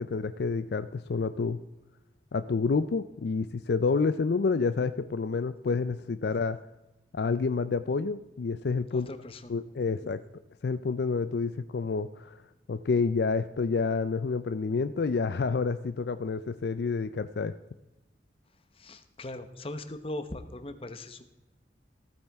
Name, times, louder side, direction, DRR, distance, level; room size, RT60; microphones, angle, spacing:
voice 1, 0.0-1.6 2.3-6.6 7.1-9.1 9.5-10.2 10.6-12.4 12.7-17.5, left 4 dB, 65° left, 12 dB, 0.4 m, -29 dB
voice 2, 8.9-9.6 10.0-10.1 18.7-21.3, left 1 dB, 30° left, 10 dB, 0.9 m, -40 dB
15.5 x 8.8 x 3.5 m, 1.0 s
head